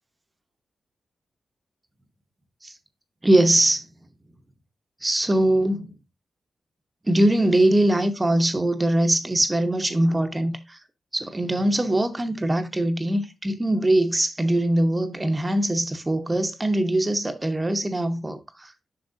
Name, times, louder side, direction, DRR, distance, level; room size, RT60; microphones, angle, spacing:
voice 1, 3.2-3.9 5.0-5.9 7.0-10.8 11.1-18.7, right 1 dB, 20° right, 0.9 m, -22 dB
8.0 x 5.9 x 2.6 m
cardioid pair, 80°, 0 cm